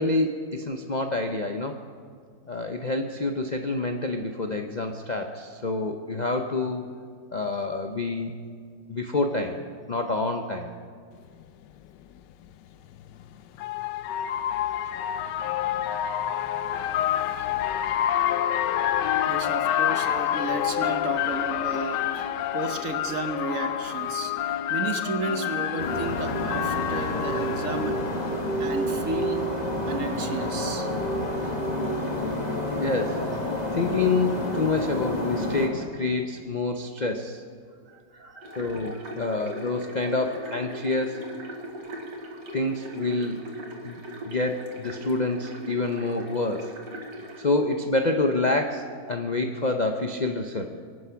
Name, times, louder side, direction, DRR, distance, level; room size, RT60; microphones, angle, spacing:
voice 1, 0.0-1.8 2.5-6.8 7.3-8.4 8.9-9.6 9.9-10.7 32.7-33.3 33.7-37.4 38.4-41.3 42.5-43.5 43.8-46.8 47.4-50.8, left 3 dB, 45° left, 4 dB, 0.6 m, -27 dB
sound 1, 11.4-11.5 12.9-28.5, left 11 dB, 85° left, 1.3 m, -28 dB
voice 2, 19.3-28.1 28.6-29.6 29.9-30.9 37.9-38.7, right 3 dB, 55° right, 7 dB, 1.3 m, -33 dB
sound 2, 25.8-35.7, left 1 dB, 25° left, 2.0 m, -29 dB
sound 3, 38.4-47.4, right 1 dB, 85° right, 2.6 m, -40 dB
24.0 x 9.7 x 5.8 m, 2.1 s
omnidirectional pair, 1.8 m